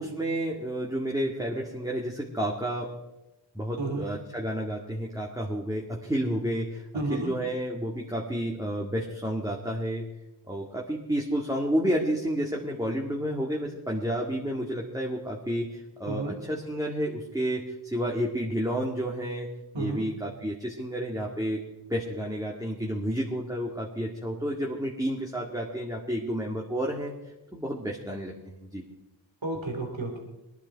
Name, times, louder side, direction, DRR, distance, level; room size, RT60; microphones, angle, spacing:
voice 1, 0.0-2.9 3.5-6.8 7.1-10.0 10.5-19.5 19.8-21.6 21.9-27.1 27.5-28.3 28.6-28.8, equal, 5° right, -2 dB, 2.1 m, -30 dB
voice 2, 6.9-7.3 16.1-16.3 19.7-20.0 29.4-30.2, right 2 dB, 75° right, 2 dB, 2.7 m, -31 dB
20.5 x 10.5 x 4.7 m, 0.99 s
wide cardioid pair, 45°, 46 cm